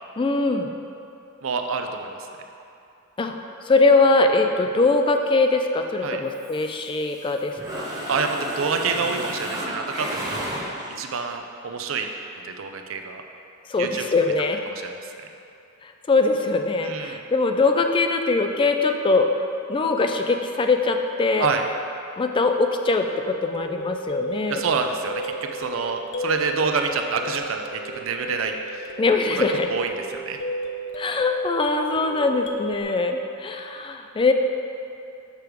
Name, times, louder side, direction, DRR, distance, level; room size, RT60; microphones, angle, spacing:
voice 1, 0.2-0.7 3.2-3.3 3.7-7.9 13.7-14.6 15.8-19.3 19.7-21.5 22.2-24.6 29.0-29.7 31.0-34.3, left 3 dB, 25° left, 5 dB, 0.4 m, -22 dB
voice 2, 1.4-2.3 6.0-6.2 8.1-12.1 12.4-13.2 13.8-14.1 14.7-15.1 16.8-17.2 21.4-21.7 24.5-29.0 29.7-30.4, right 4 dB, 75° right, 5 dB, 0.5 m, -27 dB
Mechanisms, 6.3-7.3 7.6-11.1, equal, 20° right, 1.2 m, -32 dB
sound 1, 23.5-32.8, right 1 dB, 60° left, 0.6 m, -34 dB
6.8 x 5.0 x 4.6 m, 2.7 s
head